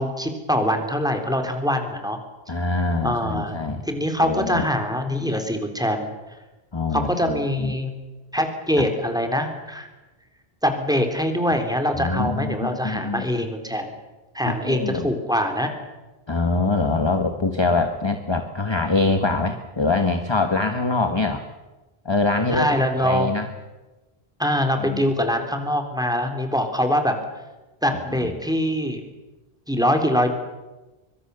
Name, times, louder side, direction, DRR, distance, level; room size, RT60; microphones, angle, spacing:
voice 1, 0.0-2.2 3.0-3.6 3.8-6.1 6.9-7.9 8.3-9.9 10.6-13.9 14.3-15.7 22.5-23.3 24.4-27.1 27.8-29.0 29.7-30.3, equal, 5° right, 5 dB, 3.3 m, -23 dB
voice 2, 2.5-3.8 4.2-4.6 5.8-5.9 6.7-7.7 12.0-13.3 14.4-15.1 16.3-21.4 22.0-23.5 24.8-25.1 28.2-28.3, left 3 dB, 25° left, 7 dB, 1.3 m, -24 dB
24.0 x 24.0 x 6.9 m, 1.1 s
omnidirectional pair, 1.0 m